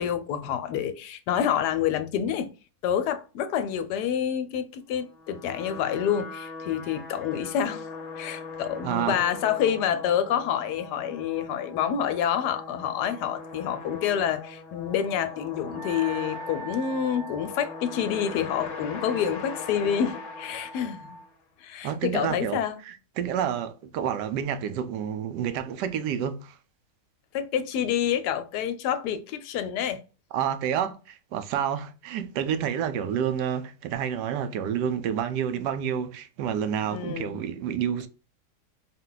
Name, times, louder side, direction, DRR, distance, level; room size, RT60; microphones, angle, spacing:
voice 1, 0.0-2.5 2.8-7.8 8.2-21.1 21.6-22.8 27.3-30.0 36.9-37.4, left 9 dB, 80° left, 1.1 m, -28 dB
sound 1, 5.0-21.4, left 4 dB, 55° left, 1.0 m, -40 dB
voice 2, 8.8-9.2 21.8-26.6 30.3-38.1, right 8 dB, 85° right, 1.2 m, -29 dB
Wind instrument woodwind instrument, 15.7-21.3, right 2 dB, 50° right, 0.8 m, -42 dB
4.0 x 2.2 x 3.8 m
omnidirectional pair, 1.8 m